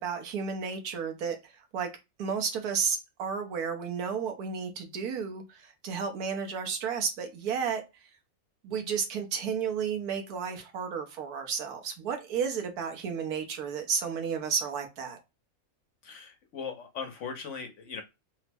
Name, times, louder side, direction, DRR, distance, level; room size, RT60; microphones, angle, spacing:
voice 1, 0.0-1.9 2.2-7.8 8.6-15.2, right 6 dB, 90° right, 1.3 m, -32 dB
voice 2, 16.0-18.0, left 6 dB, 60° left, 1.0 m, -39 dB
3.4 x 2.0 x 3.3 m
omnidirectional pair, 1.6 m